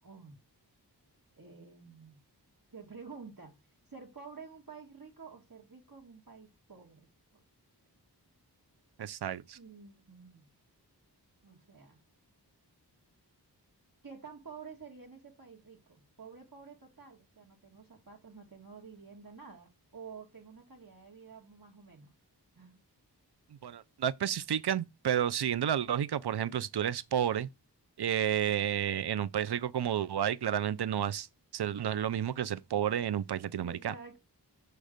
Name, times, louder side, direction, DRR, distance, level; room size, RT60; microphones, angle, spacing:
voice 1, 0.0-0.4 1.4-2.2 2.7-3.6 3.9-7.1 9.5-10.5 11.4-12.0 14.0-22.1 22.6-22.8 33.6-34.2, right 5 dB, 55° right, 1.7 m, -50 dB
voice 2, 9.0-9.6 23.6-27.5 28.0-31.3 31.5-33.9, right 9 dB, 70° right, 0.5 m, -31 dB
6.4 x 3.2 x 5.1 m
wide cardioid pair, 50°, 41 cm